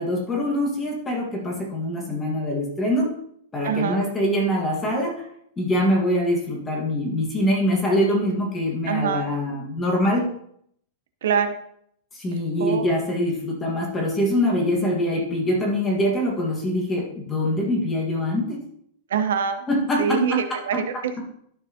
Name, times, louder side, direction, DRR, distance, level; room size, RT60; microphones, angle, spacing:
voice 1, 0.0-3.1 3.5-5.2 5.6-10.3 12.1-18.6 19.7-20.0, left 1 dB, 10° left, -2 dB, 1.7 m, -24 dB
voice 2, 3.6-4.0 8.8-9.2 11.2-11.6 12.6-12.9 14.7-14.9 19.1-19.6 20.0-21.2, right 7 dB, 90° right, 8 dB, 0.9 m, -24 dB
12.0 x 4.8 x 2.9 m, 0.68 s
supercardioid pair, 170°, 0 cm